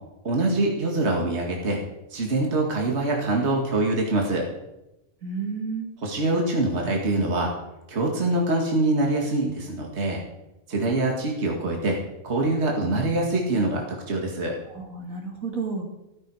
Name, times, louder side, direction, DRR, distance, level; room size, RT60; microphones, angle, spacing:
voice 1, 0.2-1.8 2.1-4.5 6.0-7.5 7.9-10.2 10.7-12.0 12.2-14.6, right 2 dB, 50° right, 0 dB, 2.2 m, -24 dB
voice 2, 5.2-5.9 14.7-15.8, right 4 dB, 70° right, 1 dB, 2.7 m, -31 dB
14.0 x 13.5 x 4.9 m, 0.95 s
omnidirectional pair, 1.5 m